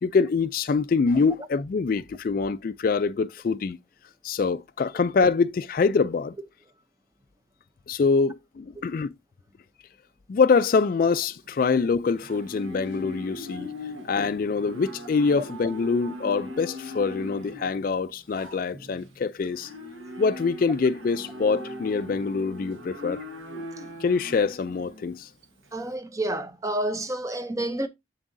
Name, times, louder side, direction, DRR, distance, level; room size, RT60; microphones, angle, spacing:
voice 1, 0.0-3.8 4.2-6.3 7.9-9.1 10.3-13.7 14.0-19.7 20.2-23.2 24.0-25.3, left 4 dB, 45° left, 0.3 m, -24 dB
Livestock farm animals working animals, 11.1-25.9, left 1 dB, 75° right, 1.5 m, -40 dB
voice 2, 25.7-27.9, right 1 dB, 15° right, 0.5 m, -29 dB
7.3 x 7.0 x 2.6 m
head